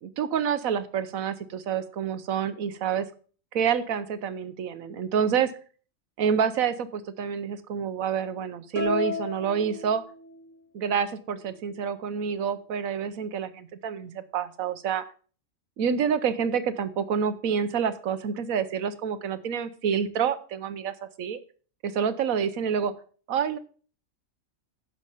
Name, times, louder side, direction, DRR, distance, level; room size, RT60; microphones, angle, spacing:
voice 1, 0.0-3.1 3.5-5.5 6.2-10.0 10.7-15.0 15.8-21.4 21.8-22.9 23.3-23.6, right 7 dB, 85° right, 12 dB, 1.3 m, -28 dB
sound 1, 8.8-10.6, left 4 dB, 60° left, 2.6 m, -33 dB
9.9 x 6.1 x 5.5 m, 0.42 s
omnidirectional pair, 1.4 m